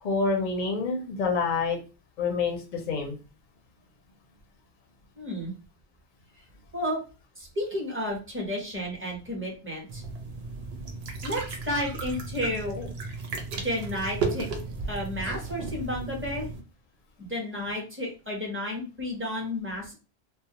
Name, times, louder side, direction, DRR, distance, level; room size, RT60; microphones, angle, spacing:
voice 1, 0.0-1.8 2.2-3.1 12.8-12.9, left 4 dB, 55° left, 2 dB, 0.6 m, -27 dB
voice 2, 5.2-5.5 6.7-7.0 7.4-10.0 11.2-12.8 13.6-14.5 14.8-16.5 17.2-19.9, left 1 dB, 15° right, -2 dB, 0.6 m, -32 dB
sound 1, 9.9-16.6, right 3 dB, 75° right, 0.8 m, -34 dB
2.3 x 2.1 x 2.7 m, 0.32 s
omnidirectional pair, 1.1 m